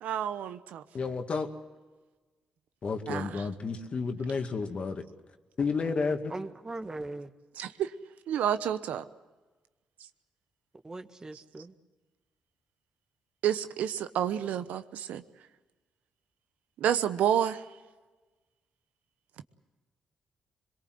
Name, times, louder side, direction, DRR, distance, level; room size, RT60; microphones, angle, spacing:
voice 1, 0.0-0.8 3.1-3.4 7.6-7.9 8.3-9.0 13.4-15.2 16.8-17.6, right 10 dB, 80° right, 11 dB, 1.0 m, -29 dB
voice 2, 0.9-1.5 2.8-5.0 5.6-6.3, left 4 dB, 50° left, 6 dB, 2.2 m, -31 dB
voice 3, 6.3-7.3 10.8-11.7, right 2 dB, 25° right, 8 dB, 1.6 m, -40 dB
23.0 x 22.0 x 7.9 m, 1.2 s
supercardioid pair, 65°, 3 cm